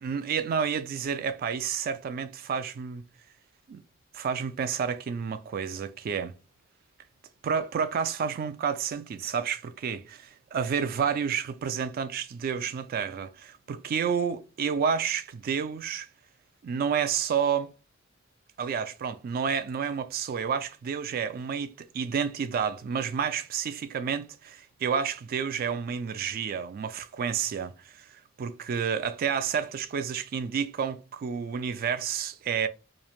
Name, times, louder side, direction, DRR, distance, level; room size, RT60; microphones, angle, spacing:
voice 1, 0.0-3.0 3.7-3.8 4.1-6.4 7.4-16.1 16.6-17.7 18.6-32.7, right 7 dB, 45° right, 0.3 m, -30 dB
2.5 x 2.0 x 2.9 m
head